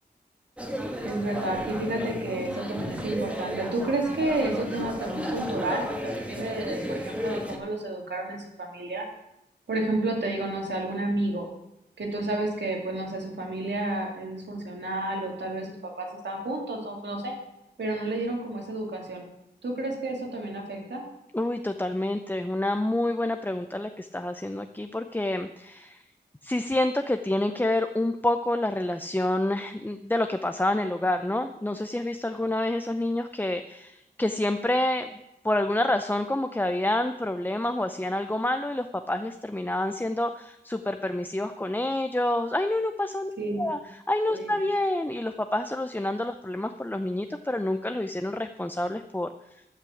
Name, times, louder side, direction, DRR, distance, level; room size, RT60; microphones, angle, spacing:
sound 1, 0.6-7.6, equal, 5° right, 1.7 m, -33 dB
voice 1, 1.0-9.1 9.7-11.5 12.0-17.3 17.8-19.2 19.6-21.0 43.4-43.7 44.3-44.5, right 2 dB, 85° right, 1 dB, 2.4 m, -31 dB
voice 2, 21.3-26.0 26.4-43.3 43.6-43.8 44.1-49.3, left 1 dB, 10° left, 8 dB, 0.6 m, -28 dB
13.0 x 5.9 x 7.2 m, 0.87 s
wide cardioid pair, 55°, 17 cm